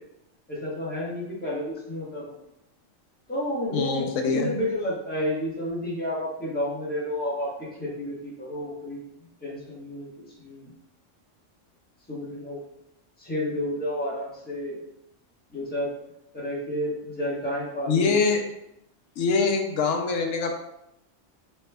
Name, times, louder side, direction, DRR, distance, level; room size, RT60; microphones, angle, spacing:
voice 1, 0.5-2.4 3.3-9.0 9.4-10.7 12.1-12.6 13.2-14.8 15.5-15.9 16.3-18.3, left 1 dB, 10° left, -6 dB, 1.0 m, -31 dB
voice 2, 3.7-4.5 17.9-18.4 19.2-20.5, left 4 dB, 90° left, 2 dB, 1.0 m, -24 dB
4.9 x 3.4 x 2.2 m, 0.84 s
omnidirectional pair, 1.3 m